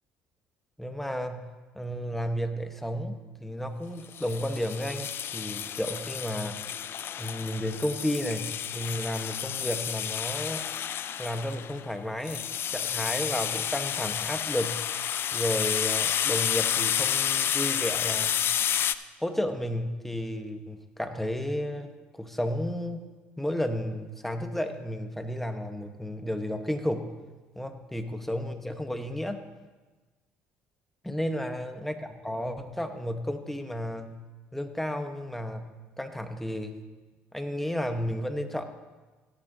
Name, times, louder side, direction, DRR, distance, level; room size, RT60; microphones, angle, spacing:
voice 1, 0.8-6.6 7.2-10.7 11.2-14.8 15.3-18.4 19.2-23.0 23.4-27.1 27.5-29.4 31.0-34.2 34.5-35.7 36.0-36.8 37.3-38.7, equal, 5° left, 7 dB, 1.1 m, -32 dB
sound 1, 4.1-18.9, left 9 dB, 55° left, 0.4 m, -30 dB
16.5 x 9.7 x 2.8 m, 1.2 s
supercardioid pair, 75°, 5 cm